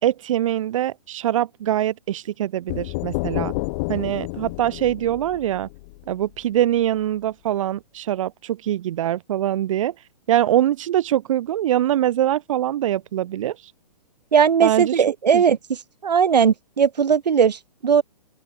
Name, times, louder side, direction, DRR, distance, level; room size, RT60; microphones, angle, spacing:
voice 1, 0.0-3.5 3.9-5.7 6.1-9.9 10.3-13.6 14.6-15.0 15.3-15.4, right 12 dB, 50° right, 3.2 m, -23 dB
sound 1, 2.7-6.4, left 26 dB, 35° left, 3.9 m, -30 dB
voice 2, 14.3-18.0, right 7 dB, 75° right, 5.3 m, -18 dB
open air
hypercardioid pair, 150°, 21 cm